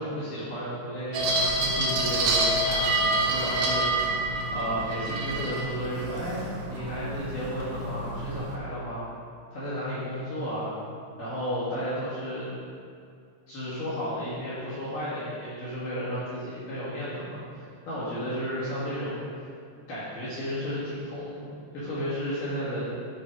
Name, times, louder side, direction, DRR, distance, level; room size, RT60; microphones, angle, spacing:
voice 1, 0.0-4.2 4.5-9.1 9.5-10.7 11.2-12.5 13.5-19.2 19.9-22.9, equal, 60° left, -11 dB, 2.4 m, -33 dB
sound 1, 1.1-8.6, right 2 dB, 80° right, 2.0 m, -27 dB
11.5 x 4.6 x 5.0 m, 2.3 s
omnidirectional pair, 6.0 m